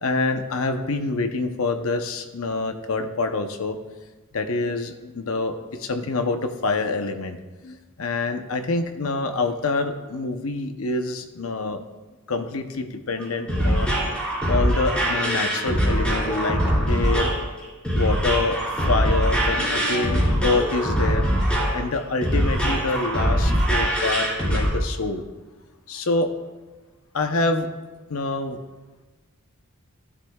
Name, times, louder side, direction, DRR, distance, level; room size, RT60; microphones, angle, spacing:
voice 1, 0.0-3.8 4.3-7.4 7.6-11.8 12.3-13.9 14.5-17.3 17.9-18.6 18.9-21.2 21.7-25.2 25.9-26.3 27.1-27.7 28.1-28.6, left 3 dB, 70° left, 7 dB, 0.8 m, -26 dB
sound 1, 13.2-24.7, equal, 5° left, 2.8 m, -22 dB
14.5 x 9.9 x 2.3 m, 1.2 s
head